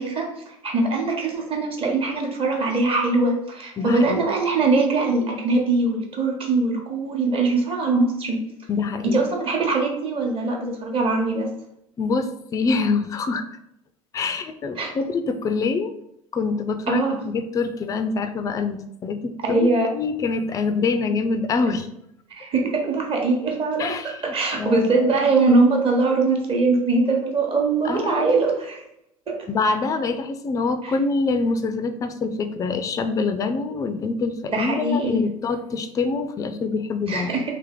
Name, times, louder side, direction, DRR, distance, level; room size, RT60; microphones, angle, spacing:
voice 1, 0.0-8.4 9.0-11.5 14.8-14.9 16.9-17.2 19.4-19.9 22.3-28.8 29.3-29.4 30.8-30.9 34.5-35.2 37.1-37.4, right 3 dB, 30° right, 1 dB, 1.0 m, -22 dB
voice 2, 3.8-4.2 8.7-9.2 12.0-13.4 14.1-15.9 16.3-19.7 19.9-21.9 23.8-25.2 27.8-28.6 29.5-37.3, left 4 dB, 20° left, 9 dB, 0.3 m, -25 dB
3.3 x 3.0 x 3.6 m, 0.77 s
figure-of-eight pair, 70°, 19 cm